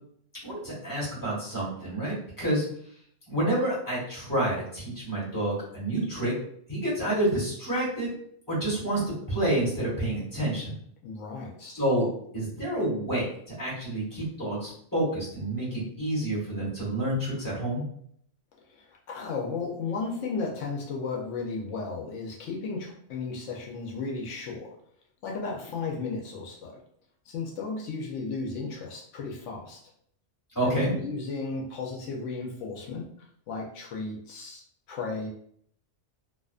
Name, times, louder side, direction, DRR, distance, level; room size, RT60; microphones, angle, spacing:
voice 1, 0.4-2.6 3.3-6.3 6.7-8.1 8.5-9.0 9.3-10.7 11.7-12.1 12.3-17.9 30.5-30.9, right 1 dB, 15° left, -7 dB, 1.3 m, -28 dB
voice 2, 11.0-11.7 18.8-24.8 25.2-26.8 27.3-29.8 30.6-33.1 33.5-34.6 34.9-35.3, left 4 dB, 85° left, -1 dB, 0.9 m, -34 dB
2.4 x 2.4 x 2.3 m, 0.66 s
omnidirectional pair, 1.2 m